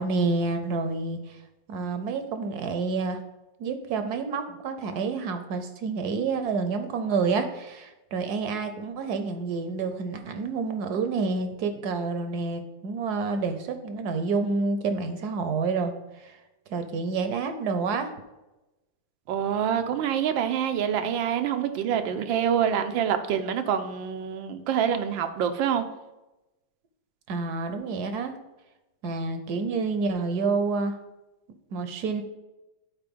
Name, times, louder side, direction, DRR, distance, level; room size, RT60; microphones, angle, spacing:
voice 1, 0.0-1.4 1.7-3.2 3.6-16.4 16.7-18.1 27.3-28.3 29.0-31.0 31.7-32.2, right 4 dB, 65° right, 8 dB, 1.1 m, -28 dB
voice 2, 19.3-25.8, right 8 dB, 90° right, 8 dB, 1.4 m, -26 dB
9.0 x 4.2 x 5.2 m, 1.0 s
omnidirectional pair, 2.0 m